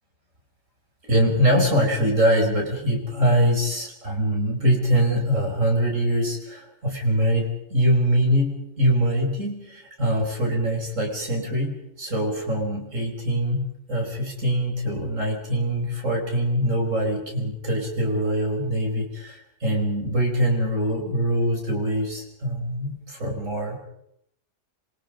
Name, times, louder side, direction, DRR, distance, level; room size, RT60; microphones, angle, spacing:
voice 1, 1.1-23.8, equal, 80° right, 0 dB, 5.9 m, -23 dB
27.0 x 24.0 x 5.2 m, 0.76 s
omnidirectional pair, 1.3 m